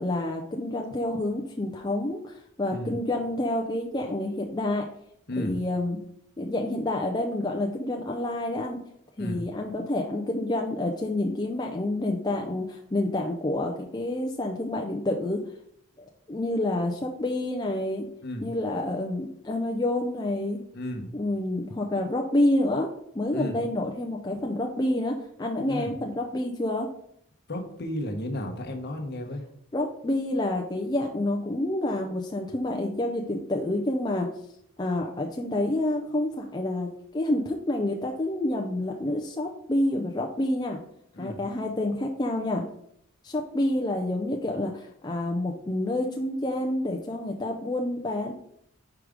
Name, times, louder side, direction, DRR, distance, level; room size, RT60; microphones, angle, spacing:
voice 1, 0.0-4.9 5.4-6.0 6.4-8.8 9.2-15.4 16.0-18.1 18.4-20.6 21.1-26.9 29.7-34.3 34.8-40.8 41.2-42.6 43.2-48.3, left 1 dB, 20° left, 1 dB, 0.4 m, -28 dB
voice 2, 5.3-5.6 9.2-9.4 18.2-18.5 20.7-21.1 23.3-23.6 25.7-25.9 27.5-29.5 41.1-41.4, left 1 dB, 50° left, 4 dB, 1.0 m, -33 dB
4.8 x 4.7 x 5.1 m, 0.71 s
head